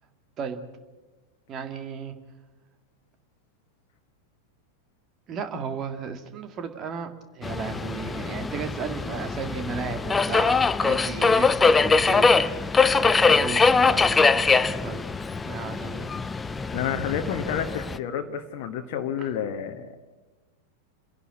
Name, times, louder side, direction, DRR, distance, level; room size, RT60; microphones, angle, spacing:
voice 1, 1.5-2.1 5.3-7.1 7.4-15.0 15.4-16.1 19.2-19.3, right 6 dB, 30° right, 8 dB, 2.0 m, -35 dB
Subway metro underground, 7.4-18.0, left 4 dB, 15° left, 0.6 m, -22 dB
voice 2, 16.7-19.9, left 8 dB, 50° left, 3 dB, 1.2 m, -30 dB
29.5 x 11.0 x 8.5 m, 1.2 s
figure-of-eight pair, 90°, 0 cm